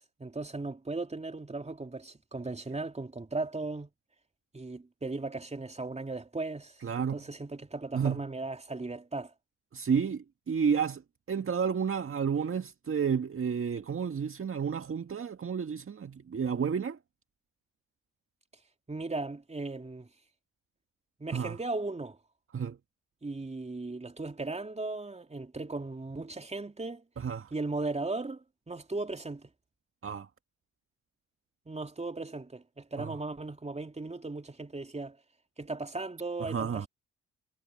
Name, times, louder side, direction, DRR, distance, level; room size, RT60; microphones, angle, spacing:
voice 1, 0.0-3.9 4.5-9.3 18.9-20.1 21.2-22.2 23.2-27.0 27.5-29.5 31.7-35.2 35.6-36.9, right 3 dB, 20° right, 3.2 m, -37 dB
voice 2, 6.8-7.2 7.9-8.3 9.7-11.0 11.3-17.0 21.3-21.6 22.5-22.8 27.2-27.5 30.0-30.3 33.0-33.2 36.4-36.9, right 6 dB, 35° right, 1.9 m, -31 dB
hypercardioid pair, 50°, 36 cm